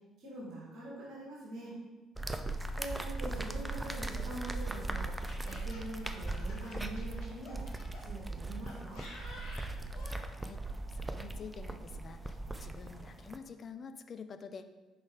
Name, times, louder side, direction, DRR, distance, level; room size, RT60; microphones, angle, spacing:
voice 1, 0.2-1.8 2.8-5.1 5.4-7.7 8.0-9.0, right 1 dB, 55° right, -5 dB, 1.7 m, -44 dB
sound 1, 2.2-13.4, right 2 dB, 15° right, 0.5 m, -39 dB
Laughter, 3.6-8.0 8.7-10.2, left 2 dB, 65° left, 2.1 m, -51 dB
voice 2, 10.3-10.6 10.9-14.6, left 5 dB, 45° left, 9 dB, 0.4 m, -48 dB
6.1 x 4.7 x 3.7 m, 1.2 s
figure-of-eight pair, 50°, 0 cm